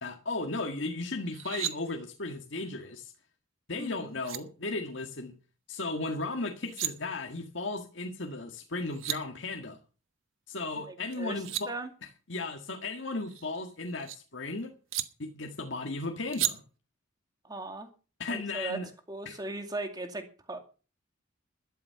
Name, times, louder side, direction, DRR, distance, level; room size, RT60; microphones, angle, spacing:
voice 1, 0.0-3.1 3.7-5.3 5.7-9.8 10.5-11.7 12.0-14.7 15.2-16.6 18.2-18.9 19.3-19.4, left 3 dB, 65° left, 3 dB, 1.8 m, -35 dB
sound 1, 1.3-1.7 3.8-3.9 4.2-4.4 6.5-6.9 8.6-8.7 8.8-9.2 11.1-11.7 13.1-14.2 14.9-15.1 16.3-16.5, right 12 dB, 80° right, 1.2 m, -34 dB
voice 2, 3.8-4.1 10.9-11.9 17.4-17.9 18.3-18.8 19.1-20.6, right 2 dB, 20° right, 6 dB, 2.2 m, -38 dB
12.5 x 11.5 x 5.8 m, 0.36 s
head